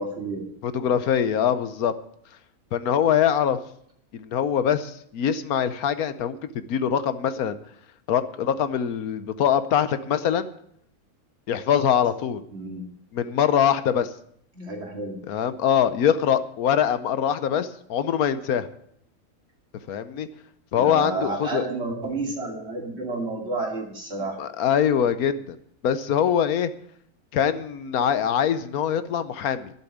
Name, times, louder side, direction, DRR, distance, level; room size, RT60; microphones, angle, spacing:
voice 1, 0.0-0.4 12.5-12.9 14.5-15.2 20.7-24.4, right 2 dB, 45° right, 1 dB, 2.8 m, -30 dB
voice 2, 0.6-1.9 2.7-3.6 4.1-7.5 8.1-10.5 11.5-12.4 13.1-14.1 15.3-18.7 19.9-20.3 20.7-21.6 24.4-25.6 25.8-26.7 27.3-29.7, left 8 dB, 75° left, 12 dB, 1.3 m, -23 dB
11.5 x 7.0 x 9.9 m, 0.68 s
omnidirectional pair, 1.6 m